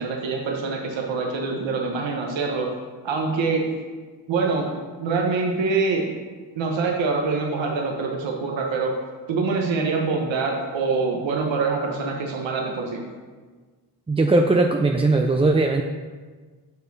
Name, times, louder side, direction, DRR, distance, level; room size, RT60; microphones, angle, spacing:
voice 1, 0.0-2.7 3.0-3.7 4.3-6.1 6.5-8.9 9.3-13.0, right 4 dB, 80° right, 1 dB, 0.9 m, -25 dB
voice 2, 14.1-15.8, right 2 dB, 15° right, 3 dB, 0.3 m, -19 dB
6.3 x 5.5 x 3.9 m, 1.4 s
cardioid pair, 60°, 44 cm